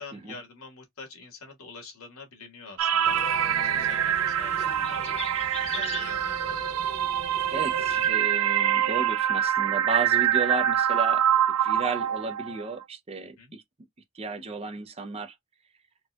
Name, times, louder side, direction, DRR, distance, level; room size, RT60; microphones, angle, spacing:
voice 1, 0.0-3.2 3.6-5.2 5.7-6.6 13.2-13.5, left 4 dB, 85° left, 1.6 m, -45 dB
sound 1, 2.8-12.8, right 10 dB, 90° right, 0.4 m, -25 dB
sound 2, 3.0-8.1, left 4 dB, 30° left, 0.4 m, -41 dB
voice 2, 7.5-11.2 11.6-13.6 14.1-15.3, right 3 dB, 25° right, 0.5 m, -33 dB
4.2 x 2.3 x 2.3 m
head